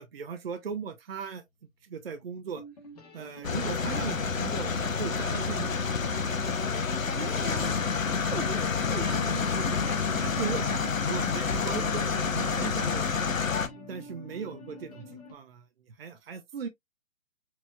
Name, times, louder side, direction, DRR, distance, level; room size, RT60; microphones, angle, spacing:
voice 1, 0.0-1.4 1.8-2.6 3.1-5.8 8.3-8.4 10.2-10.8 11.1-13.2 13.9-15.6 16.0-16.7, right 6 dB, 50° right, 0.5 m, -37 dB
sound 1, 2.0-2.1 2.5-15.3, equal, 30° left, 1.1 m, -48 dB
sound 2, 3.4-13.7, left 5 dB, 75° left, 0.8 m, -28 dB
voice 2, 7.1-7.7 8.0-10.9, right 3 dB, 85° right, 1.4 m, -39 dB
4.4 x 3.0 x 2.3 m
figure-of-eight pair, 140°, 40 cm